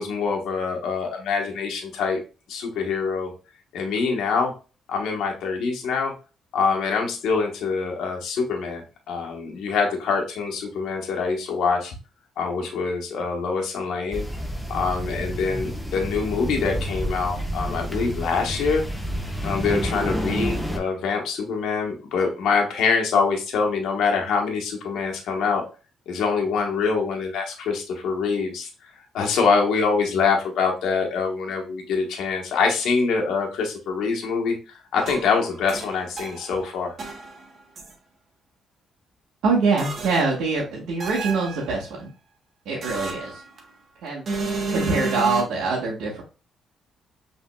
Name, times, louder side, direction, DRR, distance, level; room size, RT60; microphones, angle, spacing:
voice 1, 0.0-2.2 2.5-3.3 3.7-4.5 4.9-6.1 6.5-12.0 12.4-14.3 14.7-18.8 19.4-25.6 26.1-28.7 29.0-36.9, left 5 dB, 80° left, 1 dB, 1.1 m, -25 dB
sound 1, 14.1-20.8, equal, ahead, 0.9 m, -29 dB
sound 2, 35.0-36.6 37.0-37.9 39.8-40.4 41.0-41.8 42.8-43.7 44.3-45.4, right 3 dB, 50° right, 1.4 m, -31 dB
voice 2, 39.4-42.1 42.6-43.4 44.0-44.2 44.7-46.2, right 4 dB, 80° right, -4 dB, 1.3 m, -24 dB
5.9 x 3.5 x 2.2 m, 0.33 s
cardioid pair, 90°, 0 cm